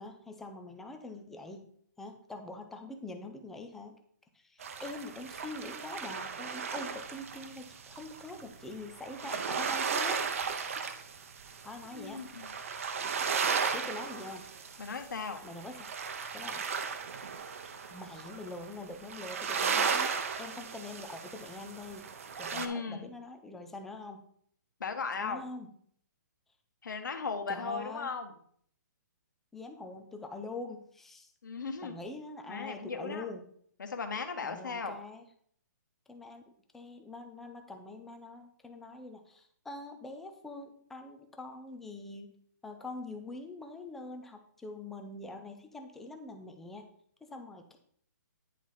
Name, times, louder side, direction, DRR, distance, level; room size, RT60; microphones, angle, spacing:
voice 1, 0.0-1.7 2.0-4.0 4.3-10.2 11.6-12.2 13.7-14.5 15.4-15.9 16.3-16.7 17.9-22.1 22.4-24.3 25.2-25.7 27.5-28.1 29.5-31.3 31.8-33.5 34.4-35.2 36.1-36.4 36.7-42.3 42.6-46.9 47.2-47.8, left 2 dB, 5° left, 5 dB, 0.4 m, -44 dB
sound 1, 4.6-22.7, right 6 dB, 45° right, 0.7 m, -36 dB
voice 2, 11.9-12.5 14.8-15.4 22.5-23.1 24.8-25.4 26.8-28.3 31.4-32.0 32.5-33.2 33.8-34.9, left 5 dB, 80° left, 5 dB, 1.2 m, -37 dB
9.9 x 4.1 x 4.6 m, 0.62 s
hypercardioid pair, 170°, 10 cm